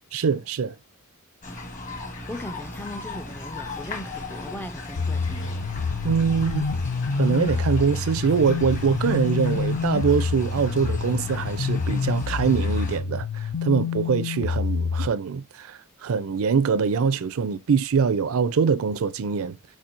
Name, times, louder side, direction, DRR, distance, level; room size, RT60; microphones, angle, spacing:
voice 1, 0.1-0.7 6.0-6.7 7.2-19.6, right 6 dB, 65° right, 0.4 m, -23 dB
sound 1, 1.4-13.0, left 2 dB, 35° left, 1.3 m, -37 dB
voice 2, 2.3-5.6, left 1 dB, 10° left, 0.4 m, -38 dB
massive distorted impact, 3.6-9.6, equal, 55° left, 2.1 m, -46 dB
sound 2, 5.0-15.1, left 5 dB, 85° left, 0.6 m, -27 dB
5.0 x 4.3 x 2.5 m
head